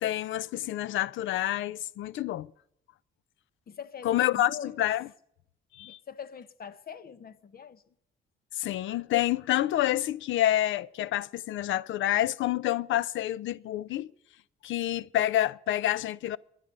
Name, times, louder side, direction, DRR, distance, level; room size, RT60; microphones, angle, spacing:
voice 1, 0.0-2.5 4.0-4.5 4.8-5.0 5.7-6.0 8.6-14.1 14.6-16.4, left 13 dB, 75° left, 0.6 m, -28 dB
voice 2, 3.7-4.8 5.8-7.9, left 7 dB, 50° left, 1.0 m, -43 dB
20.5 x 10.5 x 5.4 m
cardioid pair, 90°, 20 cm